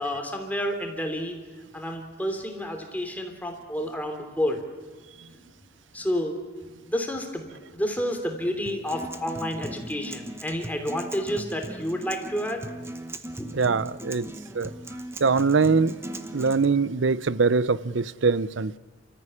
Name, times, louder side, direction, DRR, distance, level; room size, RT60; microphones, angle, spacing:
voice 1, 0.0-1.4 1.7-4.6 5.3-5.4 5.9-6.4 6.9-12.6 13.4-13.5, equal, 10° left, 3.0 m, -30 dB
Acoustic guitar, 8.7-16.6, right 1 dB, 15° right, 1.0 m, -39 dB
voice 2, 13.5-14.3 14.5-14.7 15.2-16.0 16.3-18.8, right 4 dB, 70° right, 0.7 m, -22 dB
29.5 x 14.5 x 9.9 m
head